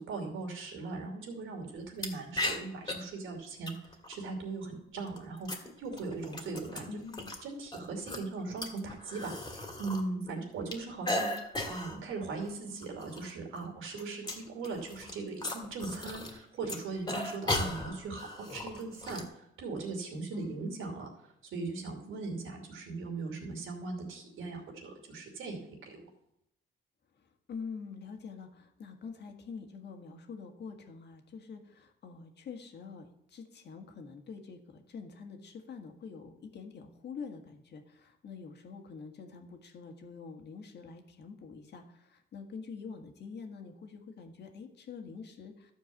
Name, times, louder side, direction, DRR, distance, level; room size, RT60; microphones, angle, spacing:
voice 1, 0.0-3.7 4.1-7.0 7.4-21.1 21.4-25.6 25.9-26.0, right 3 dB, 80° right, 2 dB, 2.7 m, -39 dB
sound 1, 2.0-2.1 2.4-2.9 3.7-4.2 5.0-7.4 7.7-10.0 10.3-12.0 12.4-12.5 12.8-13.3 13.6-16.4 16.6-19.2, left 2 dB, 20° left, 2.2 m, -36 dB
voice 2, 6.9-7.3 20.3-20.6 27.5-45.7, left 5 dB, 60° left, 5 dB, 1.7 m, -46 dB
12.5 x 4.6 x 7.1 m, 0.78 s
cardioid pair, 90°, 20 cm